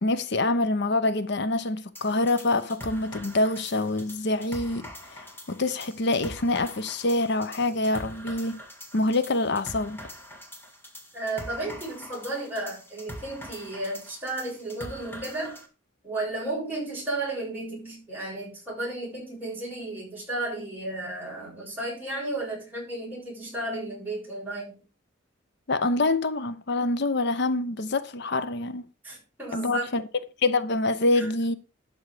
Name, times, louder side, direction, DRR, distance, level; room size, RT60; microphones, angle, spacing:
voice 1, 0.0-4.9 5.1-8.6 8.9-10.0 25.7-28.8 29.5-30.1 30.4-31.6, left 2 dB, 60° left, 0.8 m, -26 dB
sound 1, 1.9-15.7, equal, 10° left, 1.9 m, -44 dB
voice 2, 11.1-15.6 16.0-24.8 29.0-29.8 31.2-31.3, right 2 dB, 10° right, 7.4 m, -33 dB
12.0 x 6.4 x 4.9 m
head